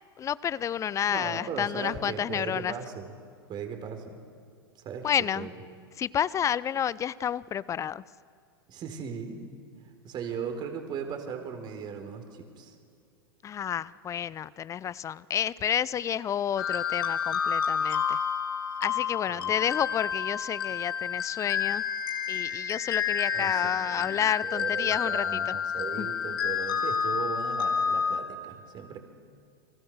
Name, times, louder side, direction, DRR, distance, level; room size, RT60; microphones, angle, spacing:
voice 1, 0.2-2.7 5.0-5.5 6.0-8.0 13.4-18.2 18.8-21.8 22.3-25.5 26.0-26.1, left 9 dB, 25° left, 21 dB, 0.6 m, -30 dB
voice 2, 1.1-3.1 3.5-4.2 4.7-5.1 5.4-5.5 8.7-9.5 10.0-12.8 19.3-19.5 23.3-29.0, right 6 dB, 35° right, 6 dB, 4.2 m, -38 dB
sound 1, 16.6-28.2, left 7 dB, 65° left, 2.3 m, -29 dB
29.5 x 24.0 x 6.6 m, 2.2 s
figure-of-eight pair, 90°, 13 cm